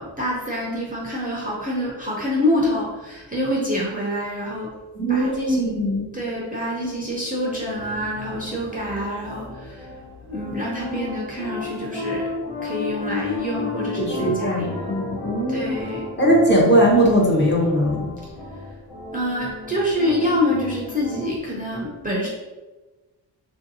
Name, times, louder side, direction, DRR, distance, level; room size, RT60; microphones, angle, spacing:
voice 1, 0.0-4.7 5.1-5.8 6.1-9.9 10.3-12.3 12.6-14.7 15.5-16.2 19.1-22.3, left 1 dB, 20° right, -5 dB, 0.4 m, -26 dB
voice 2, 5.0-6.0 14.0-15.7 16.2-18.1, equal, 25° left, -4 dB, 0.6 m, -19 dB
sound 1, 7.4-21.4, left 2 dB, 65° left, 1.0 m, -34 dB
3.2 x 2.6 x 2.6 m, 1.2 s
wide cardioid pair, 150°, 45 cm